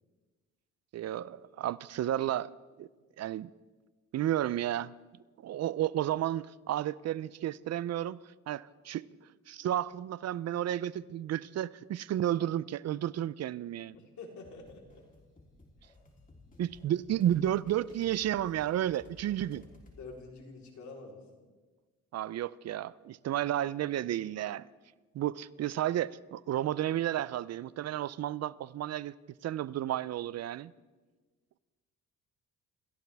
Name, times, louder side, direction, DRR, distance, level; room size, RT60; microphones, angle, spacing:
voice 1, 0.9-2.5 2.8-2.9 3.2-3.5 4.1-4.9 5.4-8.2 8.5-9.1 9.5-14.0 16.6-19.6 22.1-24.7 25.1-29.1 29.4-30.7, right 12 dB, 60° right, 0.5 m, -32 dB
voice 2, 13.9-15.0 20.0-21.4, left 3 dB, 70° left, 3.9 m, -47 dB
sound 1, 14.4-20.1, left 2 dB, 25° left, 3.4 m, -57 dB
28.5 x 14.5 x 3.5 m
cardioid pair, 90°, 30 cm